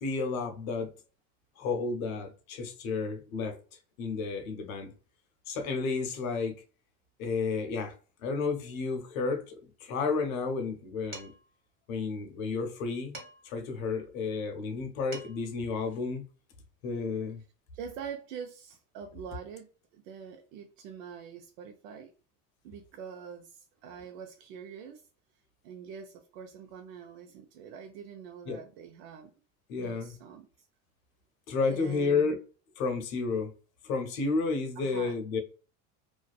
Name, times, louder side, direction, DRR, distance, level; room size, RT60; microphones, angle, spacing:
voice 1, 0.0-0.9 1.6-3.6 4.0-4.9 5.5-6.6 7.2-8.0 8.2-11.3 11.9-13.2 13.4-16.2 16.8-17.4 28.5-28.6 29.7-30.1 31.5-32.4 32.8-33.5 33.8-35.4, left 4 dB, 85° left, 0.7 m, -31 dB
Dishes pots and pans, 11.1-11.6 13.1-13.6 14.8-14.9 15.1-15.6, right 2 dB, 30° right, 1.3 m, -46 dB
voice 2, 17.7-19.7 19.9-22.1 22.6-25.0 25.6-29.3 29.7-30.5 31.6-32.4 34.8-35.2, right 7 dB, 80° right, 0.5 m, -44 dB
2.5 x 2.3 x 2.2 m
supercardioid pair, 90°, 40 cm